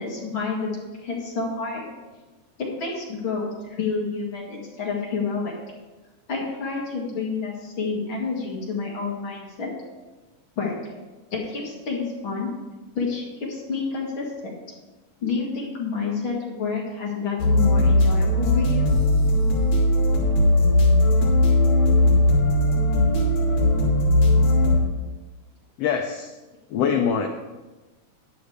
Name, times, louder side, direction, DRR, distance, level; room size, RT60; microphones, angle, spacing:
voice 1, 0.0-1.9 2.8-5.5 6.3-9.7 10.6-10.7 11.3-12.5 12.9-14.6 15.2-18.9, left 4 dB, 45° left, -3 dB, 2.4 m, -29 dB
sound 1, 17.4-24.8, left 1 dB, 65° left, 3.3 m, -18 dB
voice 2, 25.8-26.3 26.7-27.3, left 7 dB, 80° left, 5 dB, 1.4 m, -23 dB
13.0 x 10.0 x 3.3 m, 1.2 s
omnidirectional pair, 3.6 m